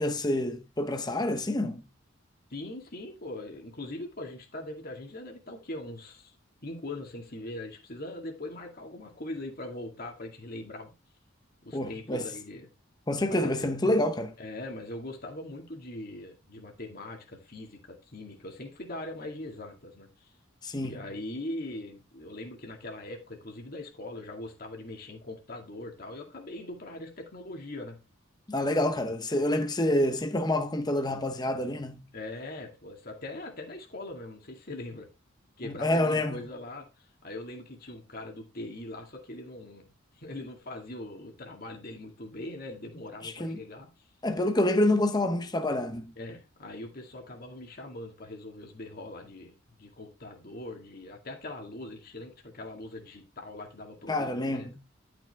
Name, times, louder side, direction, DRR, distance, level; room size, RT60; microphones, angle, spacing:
voice 1, 0.0-1.8 11.7-12.3 13.1-14.3 20.6-21.1 28.5-32.1 35.6-36.5 43.2-43.6 44.2-46.1 54.1-54.8, left 1 dB, 20° left, 0.9 m, -27 dB
voice 2, 2.5-6.4 6.6-10.9 11.6-12.7 13.3-13.8 14.4-20.3 20.8-28.0 32.1-35.1 35.6-44.1 46.2-54.7, left 2 dB, 50° left, 2.0 m, -41 dB
11.5 x 6.0 x 3.5 m
head